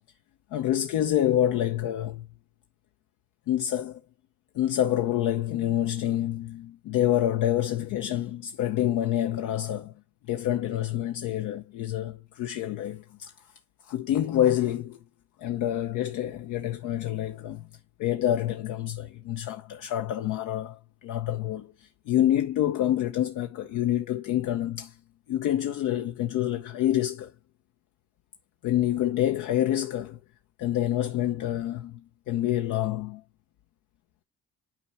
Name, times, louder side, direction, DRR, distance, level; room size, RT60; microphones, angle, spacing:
voice 1, 0.5-2.3 3.5-4.0 4.5-9.9 10.3-13.3 13.8-15.0 15.4-17.7 18.0-25.0 25.3-27.3 28.6-30.2 30.6-33.2, left 12 dB, 90° left, 0.7 m, -27 dB
8.6 x 4.8 x 4.2 m
cardioid pair, 90°, 30 cm